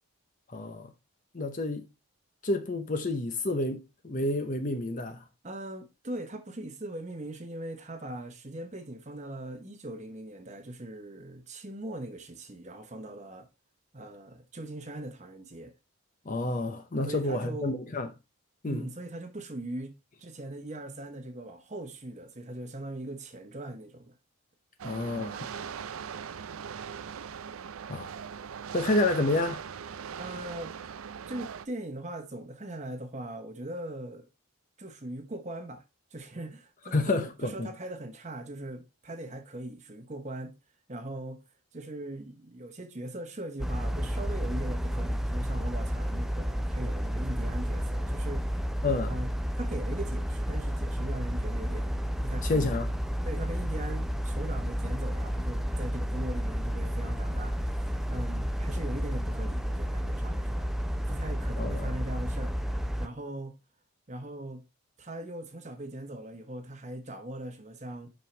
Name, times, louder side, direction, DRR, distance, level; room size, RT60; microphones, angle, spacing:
voice 1, 0.5-0.9 1.3-1.9 2.4-5.2 16.2-18.1 18.6-18.9 24.8-25.5 27.9-28.1 28.7-29.7 36.9-37.7 48.8-49.1 52.4-52.9 61.6-61.9, left 2 dB, 35° left, 0.8 m, -29 dB
voice 2, 5.4-13.5 13.9-15.7 17.1-17.8 18.6-24.1 30.2-30.8 31.3-34.3 34.8-35.8 36.1-40.6 40.9-41.4 41.7-48.6 49.1-49.3 49.6-52.7 53.2-60.7 61.1-63.6 64.1-64.6 65.0-68.1, right 1 dB, 30° right, 0.9 m, -40 dB
sound 1, 24.8-31.7, right 7 dB, 75° right, 0.5 m, -40 dB
sound 2, 43.6-63.1, equal, ahead, 0.4 m, -31 dB
7.4 x 5.4 x 3.2 m
head